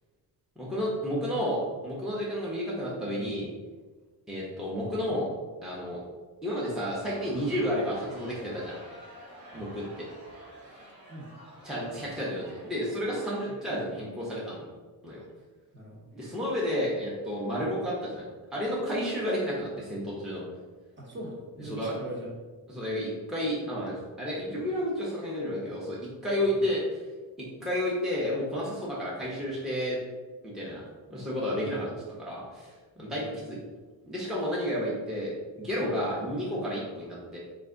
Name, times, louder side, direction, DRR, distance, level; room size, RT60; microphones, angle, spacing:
voice 1, 0.6-3.5 4.3-5.3 5.6-6.0 6.4-8.8 9.5-10.1 11.6-14.6 15.0-15.2 16.1-18.2 18.5-20.4 21.6-21.9 22.7-27.0 27.6-30.0 30.4-30.8 31.1-33.6 34.1-37.4, equal, ahead, -6 dB, 0.6 m, -31 dB
Crowd, 6.9-14.1, equal, 80° right, 1.2 m, -49 dB
voice 2, 10.6-11.3 13.5-13.6 15.7-16.1 21.0-22.3 26.5-26.6 33.0-33.6, right 1 dB, 30° right, -3 dB, 0.9 m, -43 dB
3.4 x 2.5 x 3.6 m, 1.4 s
cardioid pair, 120°, 37 cm